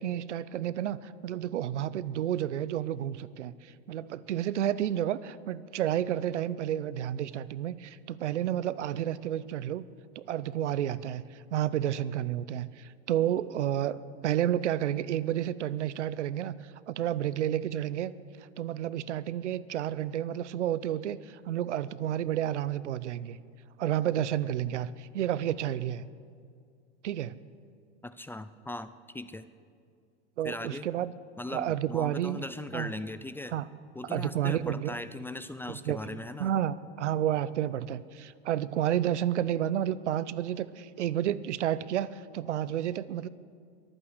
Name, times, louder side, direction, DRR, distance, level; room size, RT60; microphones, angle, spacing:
voice 1, 0.0-9.9 10.2-18.1 18.6-23.4 23.8-26.1 27.0-27.4 30.4-31.1 31.5-32.4 32.7-32.9 33.5-33.7 34.1-34.9 35.9-43.3, right 11 dB, 90° right, 18 dB, 0.6 m, -31 dB
voice 2, 28.0-29.5 30.4-30.9 31.4-33.6 33.9-36.5, left 2 dB, 5° left, 13 dB, 0.3 m, -39 dB
23.0 x 8.9 x 6.5 m, 2.2 s
hypercardioid pair, 100°, 34 cm